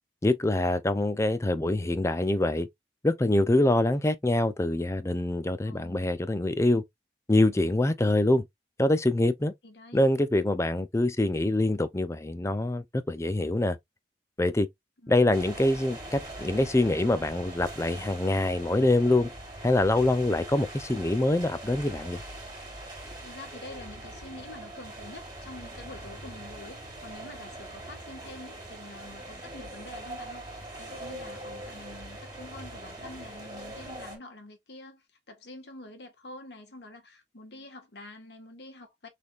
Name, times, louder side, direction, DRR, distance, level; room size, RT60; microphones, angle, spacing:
voice 1, 0.2-2.7 3.0-6.8 7.3-8.4 8.8-9.5 9.9-13.8 14.4-14.7 15.1-19.3 19.6-22.2, left 1 dB, 15° left, 0.5 m, -25 dB
voice 2, 5.7-6.1 9.6-10.1 15.0-15.4 23.2-39.1, left 2 dB, 65° left, 1.5 m, -47 dB
sound 1, 15.3-34.2, right 1 dB, 25° right, 2.5 m, -42 dB
6.3 x 3.5 x 2.4 m
head